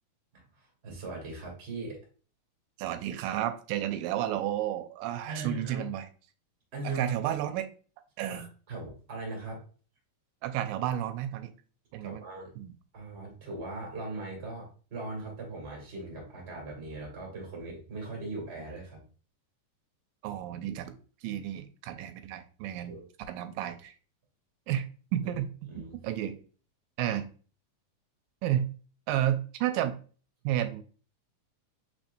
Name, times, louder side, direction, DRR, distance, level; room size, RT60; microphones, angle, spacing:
voice 1, 0.3-2.0 5.2-5.9 6.7-7.0 8.3-9.6 12.0-12.5 12.9-19.0 22.9-23.1 25.7-26.0, right 2 dB, 25° right, -1 dB, 1.5 m, -39 dB
voice 2, 2.8-6.1 6.8-7.7 8.2-8.5 10.4-11.5 11.9-12.2 12.6-12.7 20.2-23.0 23.3-23.9 24.7-24.9 25.1-25.5 26.0-26.4 27.0-27.3 28.4-28.7 29.1-30.0 30.4-30.8, right 11 dB, 90° right, 9 dB, 2.3 m, -31 dB
4.6 x 4.3 x 2.6 m, 0.38 s
omnidirectional pair, 3.9 m